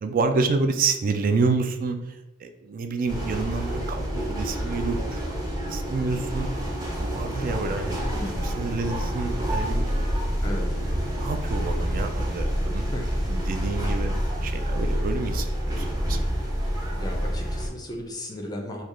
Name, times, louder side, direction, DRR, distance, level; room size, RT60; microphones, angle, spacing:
voice 1, 0.0-5.4 5.7-6.5 7.0-8.0 8.4-10.1 11.2-12.8 13.3-14.1 14.4-16.2, right 4 dB, 45° right, 7 dB, 0.3 m, -28 dB
sound 1, 3.1-17.7, equal, 20° right, 0.7 m, -28 dB
voice 2, 8.0-8.5 10.4-10.7 12.9-13.1 16.9-18.8, left 1 dB, 20° left, 2 dB, 0.4 m, -35 dB
3.1 x 2.3 x 3.6 m, 0.96 s
head